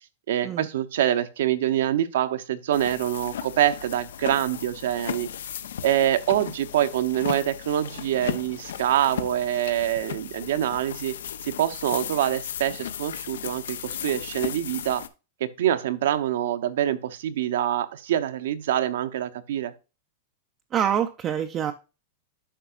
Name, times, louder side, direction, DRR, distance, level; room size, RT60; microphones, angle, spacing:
voice 1, 0.3-5.3 5.8-11.2 11.4-15.1 15.4-19.7, right 11 dB, 65° right, 0.8 m, -25 dB
sound 1, 2.7-15.1, left 9 dB, 85° left, 0.8 m, -36 dB
voice 2, 20.7-21.7, right 9 dB, 20° right, 0.4 m, -25 dB
10.0 x 5.8 x 2.4 m
supercardioid pair, 175°, 0 cm